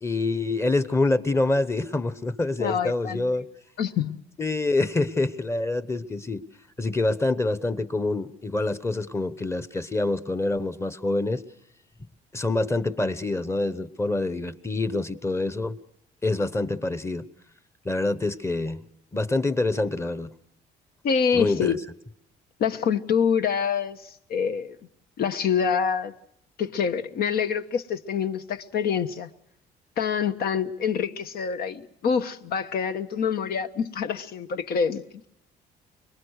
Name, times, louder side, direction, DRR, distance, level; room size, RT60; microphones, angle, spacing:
voice 1, 0.0-3.5 4.4-6.4 6.8-11.4 12.3-15.8 16.2-17.2 17.8-18.8 19.1-20.3 21.3-21.8, left 2 dB, 15° left, 1.1 m, -26 dB
voice 2, 2.6-3.3 3.8-4.2 21.0-21.8 22.6-24.8 25.2-26.1 26.6-29.3 30.0-35.0, left 7 dB, 65° left, 1.2 m, -26 dB
24.5 x 21.5 x 6.5 m
cardioid pair, 110°, 17 cm